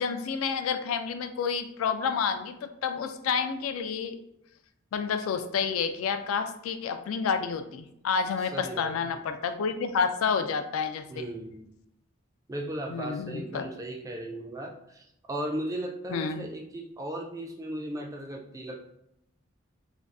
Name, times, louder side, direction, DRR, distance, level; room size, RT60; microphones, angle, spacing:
voice 1, 0.0-4.2 4.9-11.2 12.9-13.6 16.1-16.4, left 6 dB, 85° left, 8 dB, 0.3 m, -29 dB
voice 2, 8.4-9.2 11.1-11.7 12.5-18.9, right 1 dB, 15° right, 2 dB, 0.3 m, -36 dB
2.6 x 2.3 x 3.4 m, 0.79 s
head